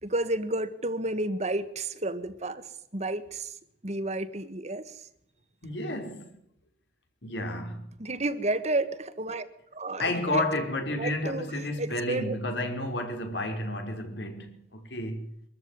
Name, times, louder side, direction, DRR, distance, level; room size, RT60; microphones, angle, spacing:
voice 1, 0.0-2.6 2.9-3.5 3.8-4.9 8.0-9.5 9.7-10.5 10.9-11.5 11.8-12.4, right 2 dB, 40° right, 1.6 m, -31 dB
voice 2, 5.6-6.3 7.2-7.9 10.0-15.3, left 1 dB, 75° left, 4.8 m, -31 dB
24.0 x 14.0 x 9.7 m
head